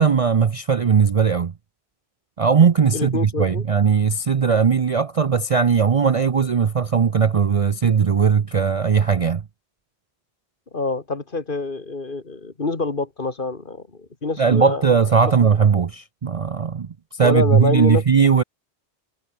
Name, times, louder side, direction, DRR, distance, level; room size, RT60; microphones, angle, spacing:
voice 1, 0.0-1.5 2.4-9.4 14.4-18.4, right 6 dB, 40° right, 0.5 m, -18 dB
voice 2, 2.9-3.6 10.7-14.8 15.4-15.6 17.2-18.0, left 3 dB, 50° left, 2.3 m, -26 dB
omnidirectional pair, 1.1 m